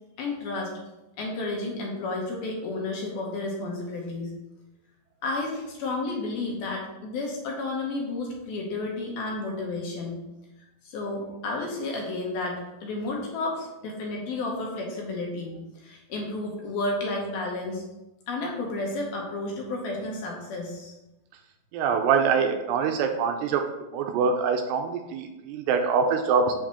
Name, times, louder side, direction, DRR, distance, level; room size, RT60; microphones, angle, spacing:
voice 1, 0.2-0.8 1.2-4.3 5.2-10.2 10.8-17.8 18.3-21.0, left 2 dB, 70° left, -1 dB, 2.6 m, -32 dB
voice 2, 21.7-23.6 23.9-26.5, right 5 dB, 85° right, 5 dB, 2.6 m, -24 dB
7.3 x 7.2 x 3.0 m, 0.98 s
omnidirectional pair, 5.0 m